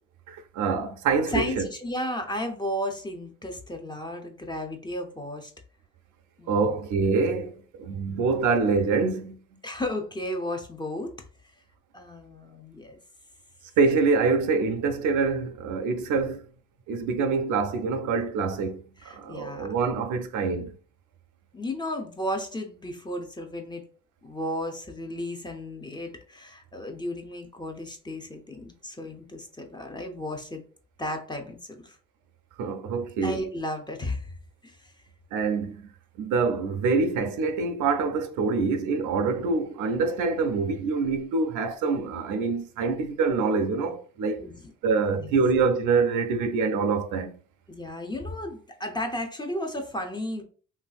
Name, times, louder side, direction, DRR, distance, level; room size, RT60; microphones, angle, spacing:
voice 1, 0.3-1.7 6.5-7.5 7.8-9.3 13.8-16.4 16.9-20.7 32.6-33.4 35.3-35.9 36.2-44.4 44.8-47.3, right 4 dB, 85° right, 0.5 m, -25 dB
voice 2, 1.3-5.5 6.4-6.8 7.9-8.3 9.6-11.1 11.9-13.0 19.0-19.8 21.5-23.9 24.2-30.6 31.0-32.0 33.2-34.3 34.6-34.8 44.4-44.7 45.1-45.3 47.7-50.4, left 1 dB, 15° left, 0.5 m, -34 dB
3.1 x 2.5 x 2.3 m
cardioid pair, 90°, 30 cm